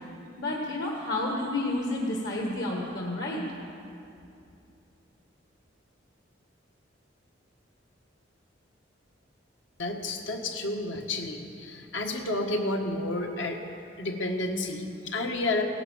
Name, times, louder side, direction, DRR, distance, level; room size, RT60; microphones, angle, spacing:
voice 1, 0.4-3.4, left 2 dB, 65° left, -2 dB, 1.5 m, -30 dB
voice 2, 9.8-13.6 14.0-15.6, left 2 dB, 80° left, 3 dB, 1.6 m, -31 dB
17.0 x 11.0 x 7.3 m, 2.6 s
head